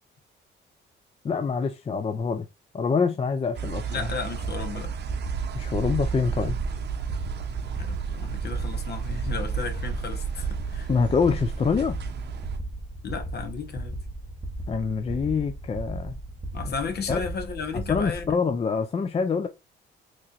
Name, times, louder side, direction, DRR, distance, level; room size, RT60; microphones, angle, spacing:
voice 1, 1.2-2.5 2.7-4.1 5.5-6.6 10.9-12.0 14.7-16.2 16.6-16.7 17.1-17.2 17.9-19.5, left 5 dB, 30° left, 0.5 m, -25 dB
sound 1, 3.5-12.6, right 7 dB, 60° right, 0.7 m, -32 dB
voice 2, 3.9-4.9 7.8-10.9 13.0-14.0 16.5-18.3, left 5 dB, 55° left, 1.0 m, -34 dB
sound 2, 4.4-18.3, right 1 dB, 15° right, 0.8 m, -36 dB
4.2 x 3.1 x 2.4 m
cardioid pair, 90°, 20 cm